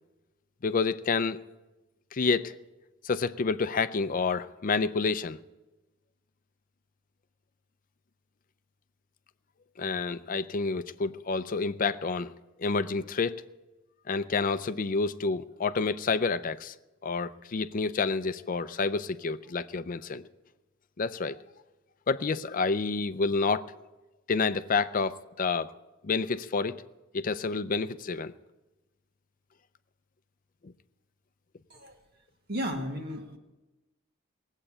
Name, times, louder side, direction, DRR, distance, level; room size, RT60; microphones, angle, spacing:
voice 1, 0.6-1.4 2.1-2.5 3.0-5.4 9.8-12.3 12.6-13.4 14.1-16.7 17.0-20.2 21.0-21.4 22.1-23.7 24.3-25.7 26.0-26.8 27.1-28.3 30.6-30.7, left 4 dB, 45° left, 12 dB, 0.5 m, -29 dB
voice 2, 32.5-33.4, equal, 50° right, 4 dB, 1.9 m, -34 dB
19.0 x 8.2 x 8.7 m, 1.1 s
head